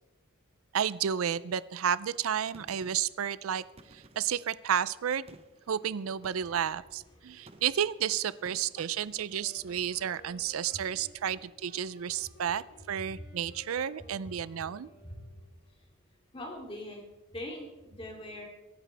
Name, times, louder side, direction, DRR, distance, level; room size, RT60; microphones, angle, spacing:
voice 1, 0.7-3.6 3.9-5.3 5.7-14.9, right 9 dB, 90° right, 18 dB, 0.4 m, -31 dB
Gunshot gunfire, 2.5-3.2 3.8-4.5 5.3-5.7 6.2-6.7 7.5-7.9 8.4-8.9, right 2 dB, 30° right, 0.8 m, -55 dB
voice 2, 7.1-7.6 8.8-10.0 10.5-11.1 15.0-15.1 16.3-17.0 17.3-18.4, left 1 dB, 25° left, -1 dB, 2.9 m, -44 dB
Wind instrument woodwind instrument, 9.2-15.7, left 1 dB, 55° left, 3.5 m, -57 dB
23.0 x 11.0 x 3.4 m, 1.1 s
head